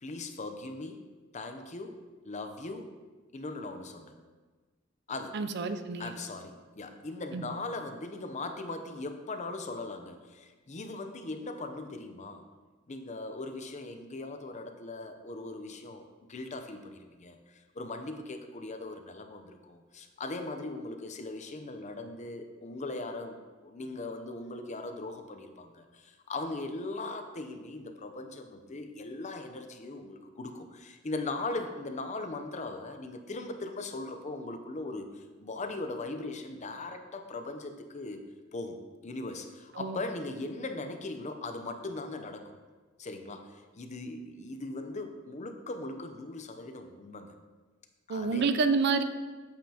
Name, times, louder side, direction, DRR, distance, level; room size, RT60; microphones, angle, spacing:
voice 1, 0.0-1.0 1.3-2.9 3.3-4.1 5.1-5.4 6.0-12.5 12.9-16.0 16.3-23.4 23.6-38.2 38.5-38.8 39.0-42.5 43.0-47.4 48.1-48.5, left 2 dB, 35° left, 6 dB, 0.6 m, -39 dB
voice 2, 5.3-6.1 7.3-7.4 39.7-40.0 48.1-49.0, right 4 dB, 60° right, 10 dB, 0.5 m, -28 dB
8.6 x 7.4 x 2.9 m, 1.3 s
head